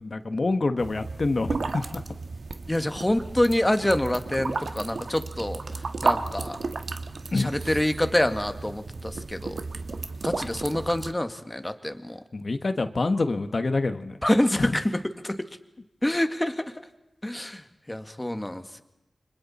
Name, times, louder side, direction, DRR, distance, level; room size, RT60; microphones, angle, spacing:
voice 1, 0.0-1.8 7.3-7.5 12.3-14.1 14.6-14.7, left 3 dB, 55° left, 9 dB, 1.3 m, -26 dB
sound 1, 0.8-11.1, right 3 dB, 75° right, 1.5 m, -33 dB
voice 2, 2.7-5.6 6.0-6.6 7.3-9.6 10.2-12.2 14.2-15.4 16.0-16.7 17.2-17.6 17.9-18.8, left 1 dB, 15° left, 9 dB, 1.7 m, -26 dB
29.5 x 25.5 x 4.3 m, 0.99 s
wide cardioid pair, 70°, 0 cm